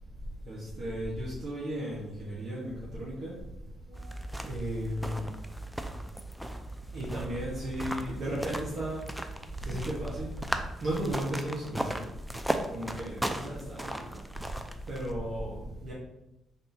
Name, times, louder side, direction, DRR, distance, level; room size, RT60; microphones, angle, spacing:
voice 1, 0.5-3.3 3.9-4.1 4.4-5.3 6.9-9.0 9.6-10.3 10.8-12.0 12.7-14.2 14.9-15.9, right 1 dB, 60° right, -6 dB, 1.1 m, -35 dB
sound 1, 3.9-15.1, right 1 dB, 5° right, 0.4 m, -37 dB
3.6 x 2.6 x 4.0 m, 0.89 s
cardioid pair, 90°, 0 cm